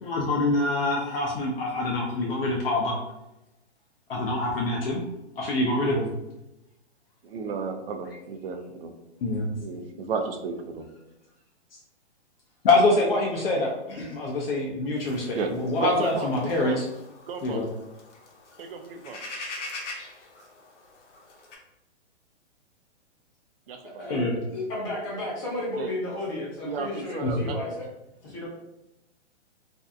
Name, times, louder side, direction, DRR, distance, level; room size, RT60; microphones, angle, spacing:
voice 1, 0.0-3.0 4.1-5.0 5.4-6.1 9.2-9.5 12.6-16.8 17.4-17.7 24.1-24.3 27.2-27.3, left 2 dB, 55° left, -2 dB, 0.5 m, -25 dB
voice 2, 7.2-8.9 9.6-10.8 13.3-13.4 15.4-15.5 15.8-16.8 17.3-17.6 18.6-19.2 23.7-24.2 25.8-25.9 26.6-27.6, right 5 dB, 55° right, 6 dB, 0.4 m, -33 dB
sound 1, 15.0-21.5, left 2 dB, 85° left, 0.8 m, -43 dB
voice 3, 23.8-27.9 28.2-28.5, left 1 dB, 30° left, -6 dB, 0.8 m, -33 dB
2.6 x 2.1 x 2.5 m, 0.93 s
hypercardioid pair, 150°, 35 cm